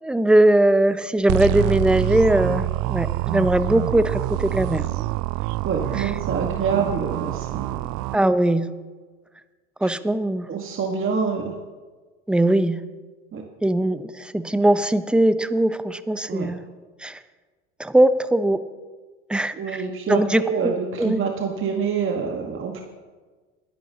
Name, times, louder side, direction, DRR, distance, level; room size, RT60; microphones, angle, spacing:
voice 1, 0.0-4.8 6.0-6.1 8.1-8.7 9.8-10.5 12.3-12.8 13.6-16.6 17.0-17.2 17.8-18.6 19.3-19.8 20.1-21.2, right 1 dB, 5° right, 13 dB, 0.7 m, -20 dB
sound 1, 1.3-8.2, right 17 dB, 55° right, 0.5 m, -26 dB
voice 2, 5.6-7.9 9.8-9.9 10.5-11.5 13.3-13.4 16.3-16.5 19.6-22.8, right 6 dB, 35° right, 2 dB, 1.5 m, -26 dB
21.5 x 11.0 x 2.9 m, 1.4 s
hypercardioid pair, 75°, 37 cm